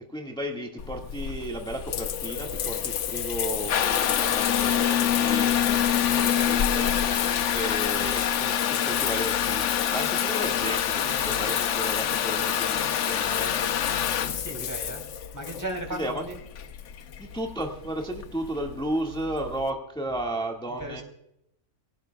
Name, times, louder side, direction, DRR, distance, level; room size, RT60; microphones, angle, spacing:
voice 1, 0.1-5.8 6.1-7.2 7.5-13.5 16.0-16.2 17.2-21.0, right 1 dB, 5° left, 1 dB, 1.6 m, -34 dB
Water tap faucet / Bathtub (filling or washing) / Trickle dribble, 0.8-19.7, left 9 dB, 65° left, 1.0 m, -26 dB
voice 2, 14.2-15.0 15.3-16.4 20.8-21.0, right 1 dB, 10° right, 4 dB, 2.8 m, -36 dB
23.0 x 17.0 x 2.3 m, 0.80 s
omnidirectional pair, 1.5 m